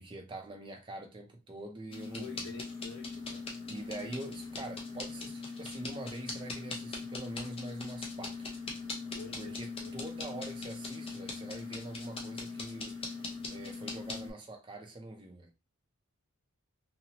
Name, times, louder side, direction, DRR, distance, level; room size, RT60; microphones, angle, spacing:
voice 1, 0.0-2.5 3.7-8.5 9.4-15.5, right 2 dB, 20° right, 0.4 m, -44 dB
sound 1, 1.9-14.3, left 4 dB, 25° left, 0.6 m, -40 dB
voice 2, 2.1-3.5 9.1-10.0, left 4 dB, 80° left, 0.9 m, -48 dB
2.8 x 2.0 x 2.7 m
head